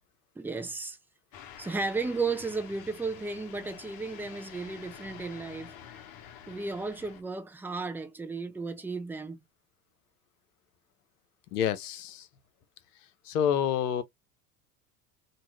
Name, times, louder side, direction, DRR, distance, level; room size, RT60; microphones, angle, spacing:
voice 1, 0.4-1.0 1.6-5.7 6.5-9.4, right 4 dB, 5° right, 0.4 m, -34 dB
sound 1, 1.3-7.2, left 9 dB, 50° left, 1.0 m, -48 dB
voice 2, 11.5-12.3 13.3-14.0, left 9 dB, 80° left, 0.7 m, -28 dB
2.7 x 2.4 x 3.0 m
hypercardioid pair, 80°, 45 cm